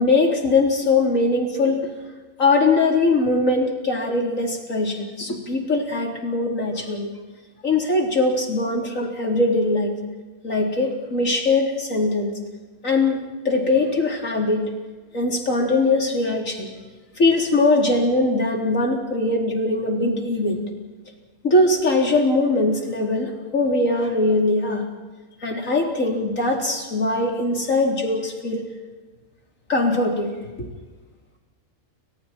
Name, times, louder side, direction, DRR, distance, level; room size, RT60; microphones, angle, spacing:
voice 1, 0.0-1.9 2.4-7.1 7.6-9.9 10.4-12.3 12.8-14.7 15.1-16.7 17.2-20.6 21.4-24.8 25.4-28.6 29.7-30.3 30.6-30.7, left 2 dB, 65° left, 1 dB, 4.3 m, -21 dB
29.5 x 26.5 x 4.5 m, 1.3 s
omnidirectional pair, 1.5 m